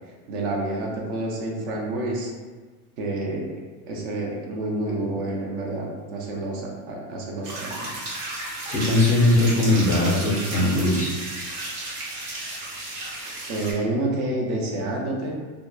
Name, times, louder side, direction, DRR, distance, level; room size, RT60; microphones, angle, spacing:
voice 1, 0.3-2.3 3.0-7.9 13.5-15.4, right 2 dB, 50° right, -2 dB, 0.6 m, -29 dB
sound 1, 7.4-13.7, right 2 dB, 65° right, 1.1 m, -33 dB
voice 2, 8.7-11.1, left 2 dB, 20° left, -8 dB, 0.3 m, -20 dB
2.8 x 2.2 x 2.2 m, 1.4 s
supercardioid pair, 155°, 46 cm